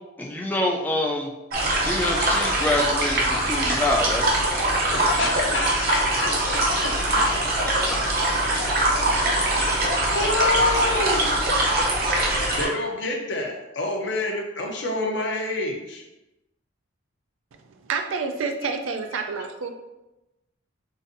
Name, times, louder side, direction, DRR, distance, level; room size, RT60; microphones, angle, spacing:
voice 1, 0.2-1.3 1.8-4.3 7.7-7.8 8.9-9.4 11.6-11.8, left 1 dB, 10° left, 0 dB, 0.3 m, -26 dB
sound 1, 1.5-12.7, right 1 dB, 50° right, 0.7 m, -23 dB
voice 2, 4.9-7.3 9.5-11.3 12.6-16.1, left 2 dB, 60° left, 1 dB, 0.6 m, -27 dB
voice 3, 17.8-19.7, right 5 dB, 85° right, 6 dB, 0.4 m, -28 dB
3.9 x 2.5 x 2.6 m, 0.98 s
head